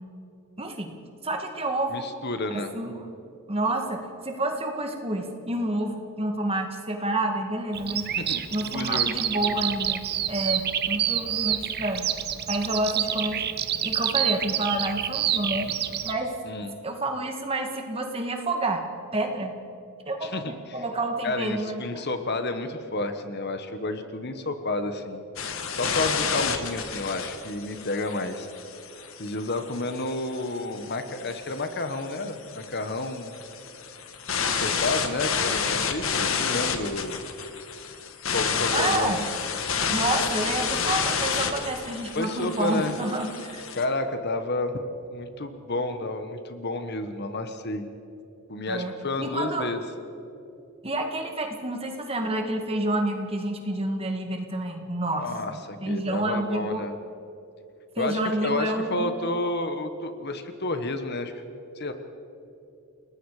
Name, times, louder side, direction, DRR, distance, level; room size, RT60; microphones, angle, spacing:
voice 1, 0.6-0.9 1.2-2.1 2.5-3.1 3.5-8.1 8.5-12.0 12.5-13.5 13.8-15.7 16.0-16.3 16.8-18.9 19.1-19.6 20.1-22.0 38.7-39.2 39.9-43.6 48.7-49.7 50.8-56.8 58.0-59.2, right 1 dB, 25° right, 4 dB, 2.0 m, -29 dB
voice 2, 1.9-2.7 8.1-9.1 16.4-16.8 20.2-20.8 21.2-25.2 25.7-28.5 29.2-33.3 34.5-37.2 38.3-39.3 42.1-43.0 43.8-44.8 45.1-47.9 48.5-49.8 55.1-57.0 58.0-61.9, left 2 dB, 50° left, 8 dB, 1.3 m, -30 dB
Bird vocalization bird call bird song, 7.7-16.1, right 10 dB, 50° right, 1.0 m, -28 dB
sound 1, 25.4-43.9, left 6 dB, 65° left, 1.6 m, -30 dB
30.0 x 19.0 x 5.0 m, 2.8 s
head